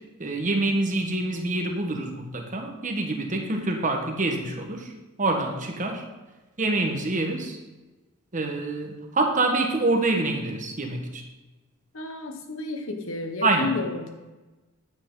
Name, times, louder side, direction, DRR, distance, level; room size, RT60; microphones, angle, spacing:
voice 1, 0.2-4.9 5.2-6.0 6.6-7.6 8.3-11.2 13.4-13.7, right 2 dB, 35° right, 3 dB, 1.3 m, -26 dB
voice 2, 11.9-14.1, left 3 dB, 70° left, 5 dB, 1.3 m, -31 dB
9.6 x 8.3 x 3.9 m, 1.1 s
head